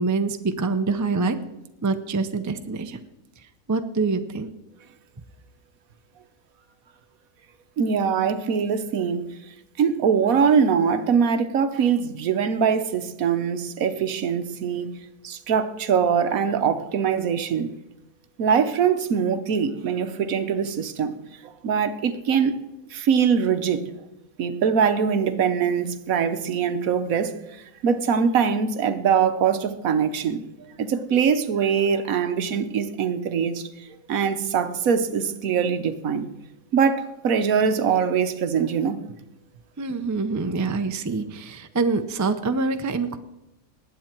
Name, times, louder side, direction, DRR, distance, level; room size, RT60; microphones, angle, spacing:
voice 1, 0.0-1.4 1.8-3.0 3.7-4.5 39.8-43.2, right 4 dB, 25° right, 8 dB, 0.4 m, -25 dB
voice 2, 7.8-9.2 9.8-14.9 15.2-17.7 18.4-21.1 21.6-22.6 22.9-23.8 24.4-30.4 30.8-33.7 34.1-36.3 36.7-39.0, right 7 dB, 70° right, 10 dB, 1.3 m, -22 dB
19.5 x 8.7 x 4.5 m, 0.95 s
omnidirectional pair, 1.6 m